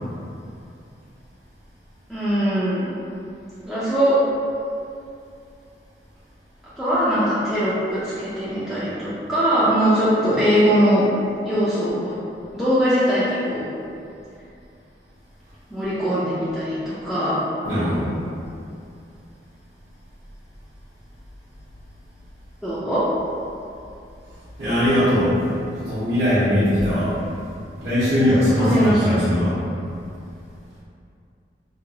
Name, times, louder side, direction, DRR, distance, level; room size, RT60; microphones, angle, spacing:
voice 1, 2.1-2.9 3.6-4.2 6.8-11.0 11.4-12.2 12.5-13.7 15.7-17.4 22.6-23.0 28.3-29.2, equal, ahead, -13 dB, 0.3 m, -21 dB
voice 2, 17.6-18.1 24.6-25.4 25.7-27.1 27.5-29.5, equal, 60° right, -15 dB, 0.8 m, -20 dB
2.8 x 2.2 x 2.7 m, 2.5 s
head